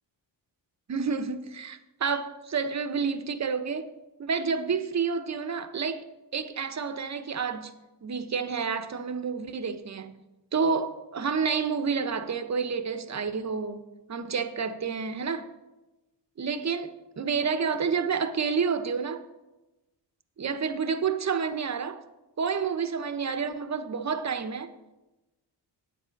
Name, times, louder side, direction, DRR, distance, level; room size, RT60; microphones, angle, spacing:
voice 1, 0.9-3.9 4.2-6.0 6.3-10.2 10.5-15.5 16.4-19.2 20.4-22.0 22.4-24.7, right 5 dB, 35° right, 1.0 m, -29 dB
8.4 x 8.1 x 5.3 m
supercardioid pair, 55°, 45 cm